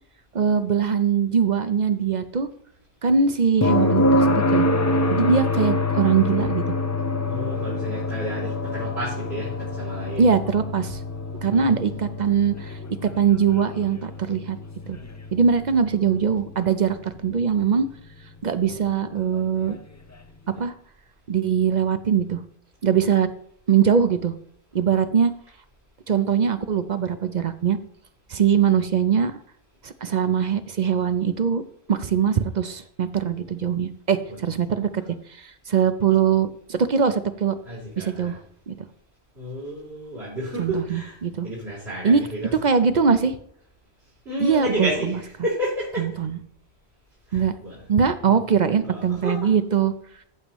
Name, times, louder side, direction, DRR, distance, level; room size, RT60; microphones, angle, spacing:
voice 1, 0.3-2.5 3.0-4.7 5.1-6.8 10.2-11.0 11.4-12.8 13.2-14.6 14.9-15.0 15.3-17.9 18.4-19.8 20.6-20.7 21.3-22.4 22.8-23.3 23.7-24.3 24.7-25.3 26.1-27.8 28.3-29.4 29.8-31.6 31.9-35.0 35.3-37.5 38.0-38.4 38.7-38.9 40.6-41.5 42.0-42.2 42.6-43.4 44.4-45.2 46.0-46.4 47.3-47.5 47.9-49.9, right 7 dB, 50° right, 11 dB, 0.7 m, -22 dB
sound 1, 3.6-17.5 19.7-19.8, left 1 dB, 20° left, 0.5 m, -26 dB
voice 2, 7.3-10.3 11.4-11.8 34.3-34.4 37.6-38.4 39.4-41.2 41.4-42.6 44.3-46.1 47.3-47.8 48.2-49.5, equal, 75° right, -7 dB, 3.6 m, -31 dB
14.5 x 7.1 x 3.0 m, 0.70 s
omnidirectional pair, 1.1 m